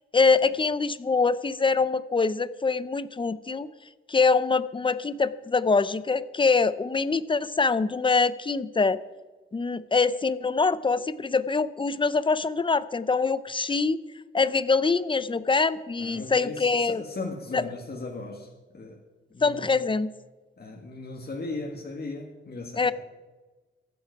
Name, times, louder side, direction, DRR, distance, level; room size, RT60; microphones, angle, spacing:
voice 1, 0.1-3.7 4.1-9.0 9.5-14.0 14.3-17.0 17.5-17.6 19.4-20.1 22.8-22.9, left 4 dB, 25° left, 15 dB, 0.6 m, -24 dB
voice 2, 16.0-18.5 18.7-19.0 19.3-19.8 20.6-22.9, left 3 dB, 50° left, -1 dB, 1.7 m, -37 dB
23.0 x 7.9 x 4.8 m, 1.2 s
wide cardioid pair, 120°, 21 cm